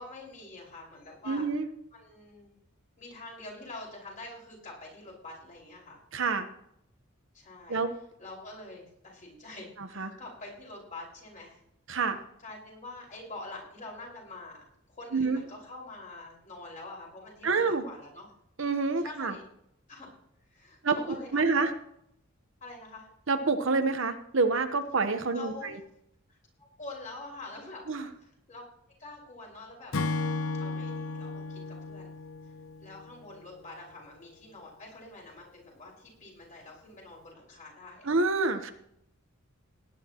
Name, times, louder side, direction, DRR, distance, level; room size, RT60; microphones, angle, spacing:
voice 1, 0.0-1.4 1.9-2.5 3.0-6.0 7.3-7.8 8.2-11.6 12.4-18.3 19.0-19.4 19.9-20.1 20.5-21.7 22.6-23.1 25.3-25.7 26.3-27.8 28.2-28.6 29.0-29.9 30.5-32.1 32.8-38.1, left 2 dB, 35° left, -2 dB, 5.4 m, -46 dB
voice 2, 1.3-1.7 6.1-6.5 7.7-7.9 9.8-10.1 11.9-12.2 15.1-15.4 17.4-17.8 18.6-19.3 20.8-21.7 23.3-25.8 27.9-28.1 38.0-38.7, right 4 dB, 60° right, 8 dB, 1.1 m, -27 dB
Acoustic guitar / Strum, 29.9-33.4, left 3 dB, 70° left, 0.8 m, -34 dB
19.0 x 10.0 x 3.0 m, 0.75 s
head